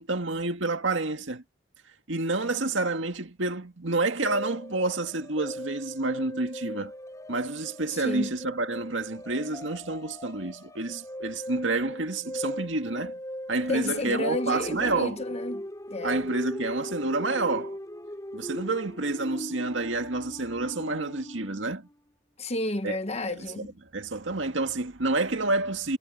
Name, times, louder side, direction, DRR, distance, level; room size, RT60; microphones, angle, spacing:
voice 1, 0.0-1.4 2.1-6.9 7.3-13.2 13.5-15.2 16.0-17.8 18.3-21.9 22.8-23.0 23.3-23.7 23.9-26.0, right 2 dB, 85° right, 2.0 m, -29 dB
sound 1, 4.2-21.6, equal, 20° left, 5.0 m, -39 dB
voice 2, 7.9-8.3 13.7-16.3 22.4-23.7, left 2 dB, 35° left, 1.4 m, -31 dB
head